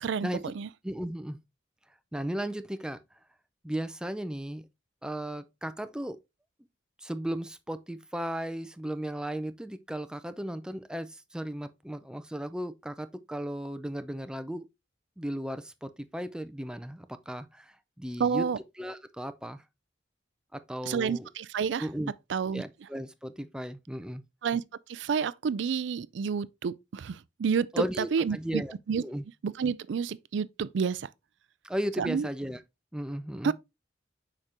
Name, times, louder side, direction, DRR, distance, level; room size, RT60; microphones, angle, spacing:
voice 1, 0.0-0.7 18.2-18.6 20.9-21.9 22.3-22.6 24.4-24.6 24.9-28.6 28.9-29.0 29.4-31.1 32.0-32.3 33.4-33.5, right 6 dB, 70° right, 0.4 m, -29 dB
voice 2, 0.8-1.4 2.1-3.0 3.6-4.6 5.0-6.2 7.0-14.6 15.2-18.5 18.8-19.6 20.5-21.3 21.8-22.1 22.5-24.2 27.7-28.7 29.0-29.2 31.6-32.6 32.9-33.5, right 1 dB, 5° right, 0.5 m, -35 dB
6.5 x 5.0 x 2.9 m
head